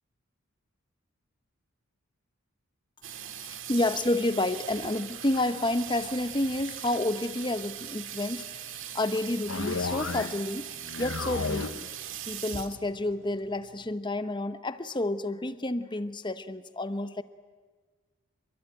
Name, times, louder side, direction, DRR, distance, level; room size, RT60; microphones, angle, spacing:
Water tap faucet / Sink (filling or washing), 3.0-13.9, right 9 dB, 65° right, 2.0 m, -41 dB
voice 1, 3.7-10.7 11.0-11.9 12.3-17.2, left 1 dB, 20° left, 12 dB, 1.0 m, -30 dB
sound 1, 9.5-10.5 10.8-11.9, left 4 dB, 65° left, 0.9 m, -33 dB
28.0 x 22.5 x 9.1 m, 1.4 s
head